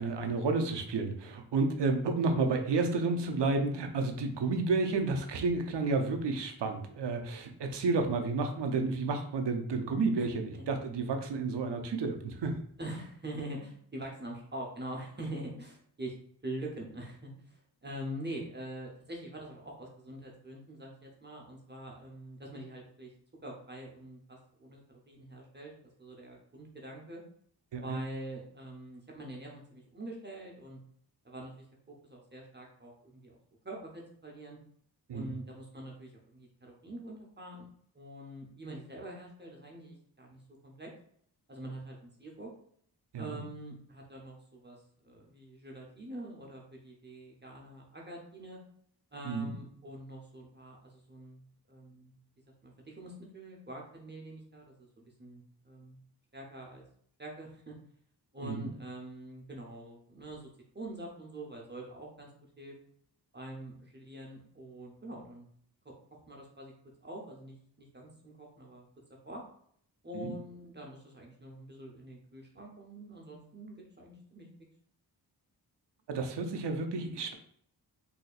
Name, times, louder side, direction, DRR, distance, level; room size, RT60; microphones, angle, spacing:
voice 1, 0.0-12.6 27.7-28.0 35.1-35.3 43.1-43.4 49.2-49.5 58.4-58.7 70.1-70.3 76.1-77.3, right 3 dB, 80° right, 5 dB, 0.6 m, -31 dB
voice 2, 12.8-16.1 16.4-23.1 23.4-25.7 26.0-27.2 27.8-30.8 31.2-33.4 33.6-34.6 35.1-37.7 37.9-40.9 41.5-42.5 43.2-48.6 49.1-51.4 51.7-52.1 52.6-56.0 56.3-56.8 57.2-57.7 58.3-60.5 60.7-62.3 62.6-62.7 63.3-65.5 65.8-65.9 66.3-66.7 67.0-68.9 69.2-69.4 70.0-74.5, right 1 dB, 25° right, -1 dB, 0.8 m, -45 dB
4.1 x 2.8 x 2.4 m, 0.63 s
wide cardioid pair, 80°, 41 cm